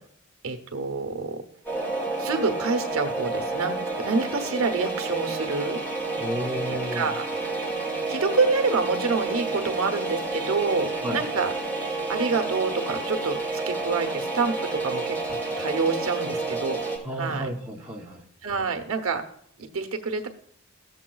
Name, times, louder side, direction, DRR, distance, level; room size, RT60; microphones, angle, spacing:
voice 1, 0.4-1.4 2.2-5.8 6.7-7.3 8.1-11.5 12.1-16.8 17.2-17.5 18.4-19.2 19.6-20.3, right 4 dB, 75° right, 6 dB, 1.0 m, -27 dB
sound 1, 1.7-17.0, right 3 dB, 10° left, 2.0 m, -30 dB
voice 2, 6.2-7.1 11.0-11.2 17.0-18.2, equal, 5° right, -4 dB, 0.8 m, -32 dB
15.0 x 7.2 x 2.3 m, 0.66 s
head